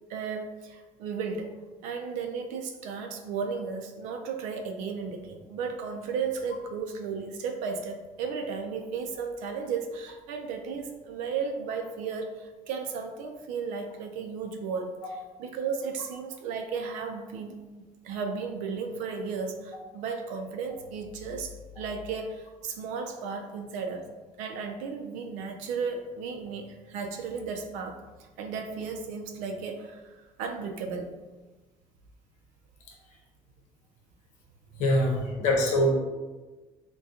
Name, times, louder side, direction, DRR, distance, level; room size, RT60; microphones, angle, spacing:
voice 1, 0.0-1.5 1.8-14.9 15.4-17.6 18.0-24.1 24.4-31.1 34.7-34.8 35.1-35.2, right 5 dB, 90° right, 4 dB, 0.5 m, -34 dB
voice 2, 34.8-35.9, left 1 dB, 70° left, 0 dB, 0.8 m, -23 dB
2.7 x 2.2 x 3.6 m, 1.2 s
cardioid pair, 165°, 13 cm